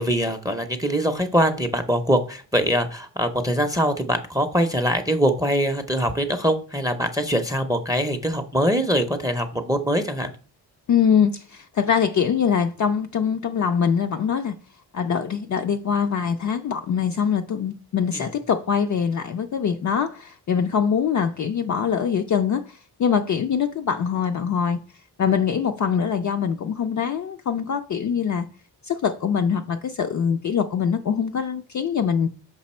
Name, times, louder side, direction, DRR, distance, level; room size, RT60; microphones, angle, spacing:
voice 1, 0.0-10.3 18.1-18.2, equal, 10° right, 0.6 m, -23 dB
voice 2, 10.9-14.6 14.9-24.8 25.2-28.5 28.8-32.3, left 7 dB, 45° left, 0.5 m, -23 dB
6.0 x 5.1 x 4.2 m
cardioid pair, 120°, 41 cm